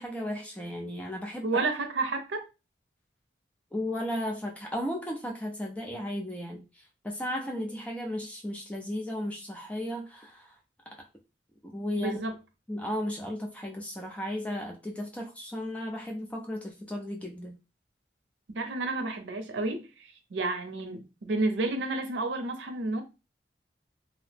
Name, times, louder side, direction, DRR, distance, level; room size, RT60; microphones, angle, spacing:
voice 1, 0.0-1.6 3.7-6.7 7.0-10.5 11.6-12.2 12.7-17.6, left 1 dB, 10° left, 0.4 m, -35 dB
voice 2, 1.4-2.4 12.0-12.3 18.6-23.0, right 3 dB, 85° right, 0.6 m, -31 dB
2.8 x 2.0 x 3.3 m
head